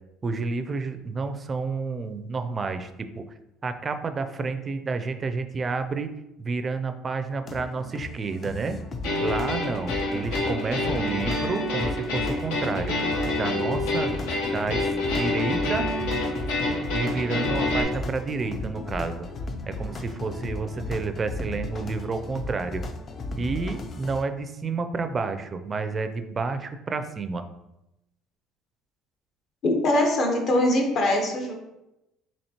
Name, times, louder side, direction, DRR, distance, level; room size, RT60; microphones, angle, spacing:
voice 1, 0.2-3.2 3.6-6.1 6.4-8.8 9.2-12.9 13.3-15.9 16.9-19.3 19.7-22.8 23.4-27.4, right 4 dB, 30° right, 9 dB, 0.4 m, -30 dB
sound 1, 7.4-24.2, left 2 dB, 40° left, 0.4 m, -35 dB
sound 2, 9.0-17.8, left 2 dB, 90° left, 0.8 m, -27 dB
voice 2, 29.6-31.5, left 1 dB, 55° left, 2 dB, 1.0 m, -22 dB
4.2 x 3.0 x 2.9 m, 0.91 s
supercardioid pair, 95°, 0 cm